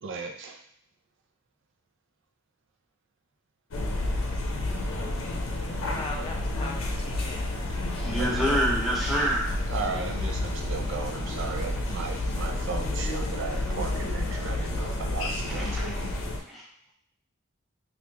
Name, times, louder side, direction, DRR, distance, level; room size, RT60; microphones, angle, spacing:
voice 1, 0.0-0.6 7.9-8.7 9.7-15.8, right 4 dB, 65° right, 3 dB, 0.4 m, -36 dB
sound 1, 3.7-16.4, left 1 dB, 85° left, 0.6 m, -30 dB
voice 2, 5.9-7.5 7.9-8.2, left 2 dB, 25° left, -1 dB, 0.4 m, -40 dB
voice 3, 8.0-9.5 15.5-15.9 16.5-16.6, right 1 dB, ahead, -6 dB, 0.9 m, -27 dB
3.0 x 2.4 x 3.4 m, 0.67 s
head